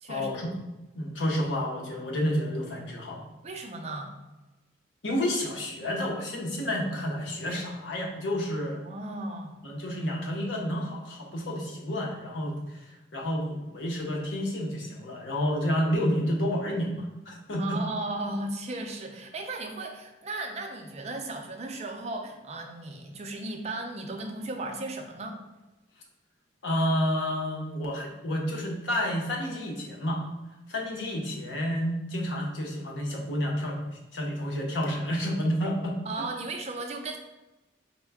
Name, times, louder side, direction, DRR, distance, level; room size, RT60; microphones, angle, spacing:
voice 1, 0.1-0.5 0.9-3.2 5.0-8.8 9.6-17.8 26.6-30.2 30.7-36.3, equal, 90° left, -1 dB, 0.9 m, -30 dB
voice 2, 3.4-4.2 8.8-9.6 17.6-25.4 36.1-37.2, right 2 dB, 35° right, 3 dB, 0.4 m, -36 dB
4.4 x 2.2 x 3.4 m, 1.0 s
head